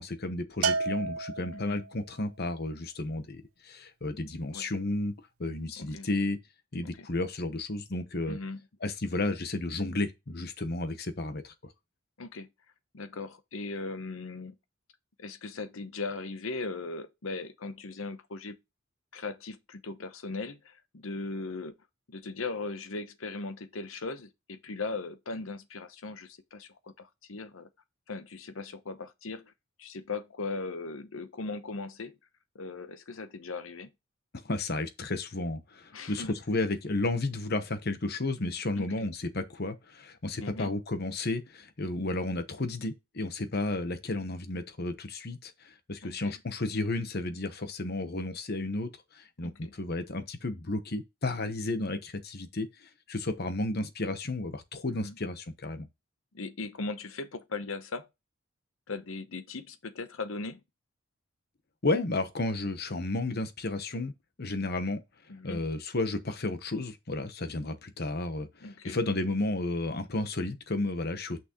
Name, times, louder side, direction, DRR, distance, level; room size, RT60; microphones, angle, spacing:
voice 1, 0.0-5.1 5.4-6.4 6.7-8.4 8.8-11.5 34.4-55.9 61.8-64.1 64.4-65.0 65.4-71.4, left 2 dB, 50° left, 1.0 m, -32 dB
Bell, 0.6-2.0, right 4 dB, 85° right, 0.6 m, -31 dB
voice 2, 1.5-1.9 4.4-4.7 5.8-6.1 6.8-7.1 8.3-8.6 12.2-12.5 12.9-14.5 15.2-18.6 19.1-21.8 22.1-27.7 28.1-29.5 29.8-32.2 32.5-33.9 35.9-36.3 38.8-39.1 40.4-40.7 46.0-46.4 49.4-49.7 54.9-55.2 56.3-58.1 58.9-60.6 65.3-65.7 68.6-69.0, left 3 dB, 75° left, 0.9 m, -38 dB
6.2 x 6.1 x 3.0 m
head